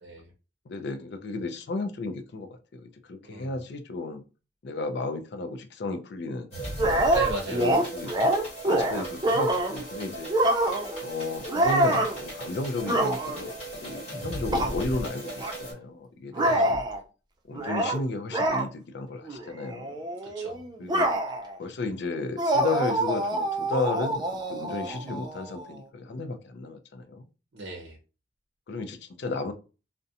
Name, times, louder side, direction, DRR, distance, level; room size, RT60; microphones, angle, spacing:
voice 1, 0.0-0.3 3.2-3.6 7.1-7.9 16.4-16.7 20.3-20.6 27.5-28.0, right 2 dB, 70° right, -1 dB, 0.6 m, -36 dB
voice 2, 0.7-4.2 4.6-6.5 7.5-8.1 8.6-10.3 11.0-16.8 17.5-20.0 20.8-21.1 21.6-27.3 28.7-29.5, left 3 dB, 65° left, 8 dB, 0.4 m, -33 dB
sound 1, 6.5-15.7, right 1 dB, 35° left, 1.2 m, -37 dB
sound 2, 6.8-9.8 10.3-11.0 11.5-12.2 12.8-13.5 14.5-14.7 15.4-15.5 16.3-17.0 17.5-18.0 18.3-18.7 19.3-19.4 19.7-21.5 22.4-25.7, right 1 dB, 25° right, 0.3 m, -26 dB
2.4 x 2.1 x 2.7 m, 0.33 s
head